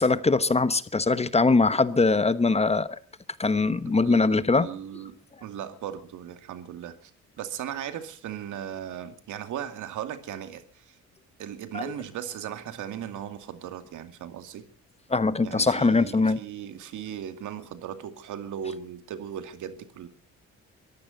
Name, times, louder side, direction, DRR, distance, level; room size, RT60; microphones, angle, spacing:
voice 1, 0.0-3.0 3.4-4.7 11.7-11.9 15.1-16.4, left 3 dB, 20° left, 1.0 m, -22 dB
voice 2, 4.6-5.1 5.4-7.1 7.4-10.6 11.4-14.6 15.4-20.1, right 9 dB, 80° right, 2.3 m, -37 dB
23.0 x 15.0 x 4.0 m
cardioid pair, 90°, 30 cm